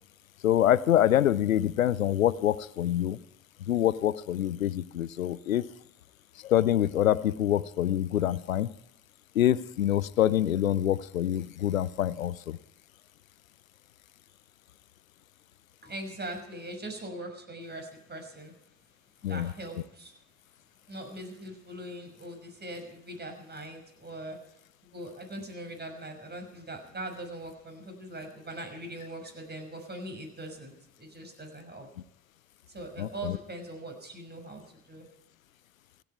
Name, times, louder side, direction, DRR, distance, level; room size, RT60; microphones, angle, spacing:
voice 1, 0.4-3.2 3.7-5.6 6.4-8.7 9.4-12.6 19.2-19.5 33.0-33.3, left 11 dB, 85° left, 20 dB, 0.6 m, -25 dB
voice 2, 15.8-18.5 19.2-20.1 20.9-24.4 24.8-31.9 32.7-35.1, right 1 dB, 25° right, 5 dB, 6.0 m, -41 dB
28.0 x 9.5 x 4.7 m, 0.81 s
figure-of-eight pair, 55°, 39 cm